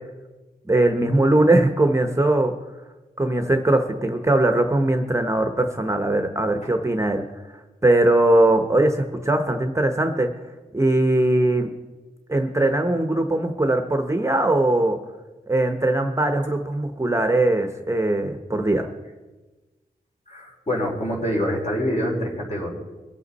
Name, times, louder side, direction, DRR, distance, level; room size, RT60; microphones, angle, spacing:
voice 1, 0.7-2.5 3.2-7.2 7.8-10.3 10.7-11.7 12.3-15.0 15.5-18.9, right 1 dB, 20° right, 6 dB, 0.9 m, -20 dB
voice 2, 20.3-22.7, equal, 45° left, -3 dB, 4.6 m, -25 dB
23.0 x 8.2 x 4.1 m, 1.2 s
wide cardioid pair, 125°, 16 cm